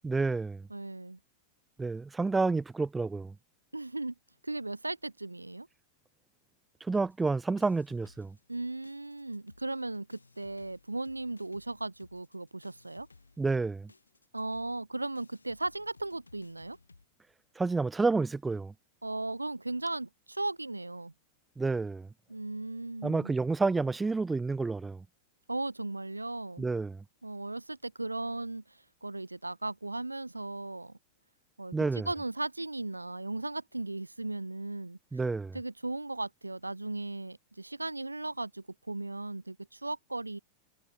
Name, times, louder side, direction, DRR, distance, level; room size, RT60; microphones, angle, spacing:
voice 1, 0.0-0.6 1.8-3.3 6.9-8.3 13.4-13.9 17.6-18.7 21.6-22.1 23.0-25.0 26.6-27.0 31.7-32.1 35.1-35.6, right 3 dB, 10° right, 0.4 m, -29 dB
voice 2, 0.7-1.2 3.7-4.1 4.4-5.7 8.5-13.1 14.3-16.8 19.0-21.1 22.3-23.3 25.5-26.7 27.2-31.0 31.6-31.7 32.0-35.0 35.5-40.4, right 2 dB, 85° right, 1.1 m, -37 dB
sound 1, 6.9-8.6 8.8-17.1, left 3 dB, 80° left, 4.0 m, -60 dB
figure-of-eight pair, 90°, 0 cm